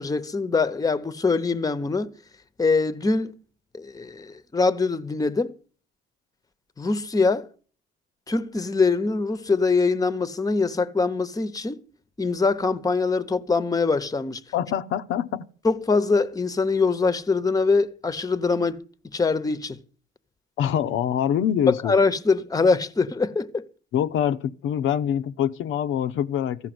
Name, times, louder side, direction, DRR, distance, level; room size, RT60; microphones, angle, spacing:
voice 1, 0.0-2.1 2.6-3.3 3.7-5.5 6.8-7.5 8.3-11.8 12.2-14.4 15.6-18.9 19.1-19.8 21.7-23.7, left 4 dB, 20° left, 0.8 m, -23 dB
voice 2, 14.5-15.5 20.6-21.9 23.9-26.6, left 9 dB, 80° left, 0.7 m, -24 dB
14.5 x 5.8 x 7.6 m
cardioid pair, 90°, 20 cm